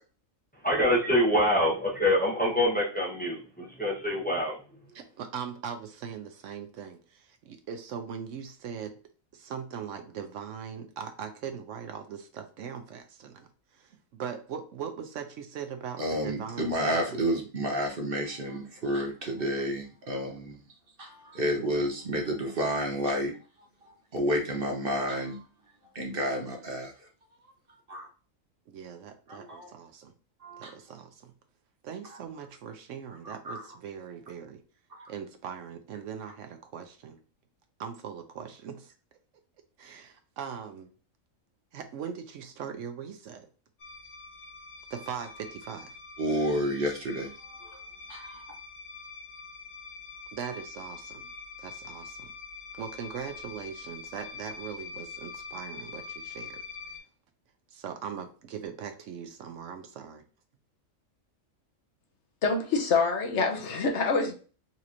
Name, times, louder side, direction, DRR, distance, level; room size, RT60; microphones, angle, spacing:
voice 1, 0.6-4.6, left 1 dB, 10° left, -2 dB, 0.8 m, -25 dB
voice 2, 4.9-9.0 9.3-17.2 28.7-30.1 30.6-31.3 31.8-34.6 35.1-37.2 37.8-38.9 39.8-40.9 41.7-43.5 44.9-46.0 50.3-51.3 51.6-52.3 52.7-56.6 57.7-60.2, right 7 dB, 70° right, 7 dB, 0.9 m, -40 dB
voice 3, 16.0-20.6 21.0-23.3 23.8-25.4 25.9-27.1 27.9-28.1 29.3-29.7 30.4-30.7 33.2-33.6 35.0-35.1 46.2-47.3 47.6-47.8 48.1-48.4, equal, 50° right, 2 dB, 0.9 m, -30 dB
sound 1, 43.8-57.0, left 4 dB, 80° left, 1.4 m, -44 dB
voice 4, 62.4-64.3, left 4 dB, 65° left, 3 dB, 0.9 m, -26 dB
4.1 x 3.0 x 2.5 m, 0.38 s
omnidirectional pair, 1.4 m